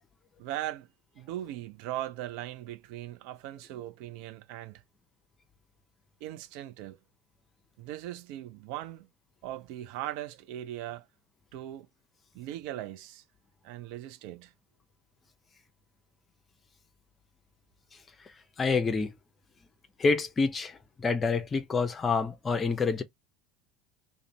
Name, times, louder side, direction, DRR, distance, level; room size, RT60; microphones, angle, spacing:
voice 1, 0.4-0.9 1.2-4.8 6.2-7.0 7.8-9.1 9.4-11.1 11.5-11.9 12.3-13.2 13.6-14.5, right 13 dB, 60° right, 0.3 m, -39 dB
voice 2, 18.2-19.1 20.0-23.0, left 4 dB, 25° left, 0.6 m, -28 dB
2.5 x 2.1 x 3.2 m
figure-of-eight pair, 70°, 0 cm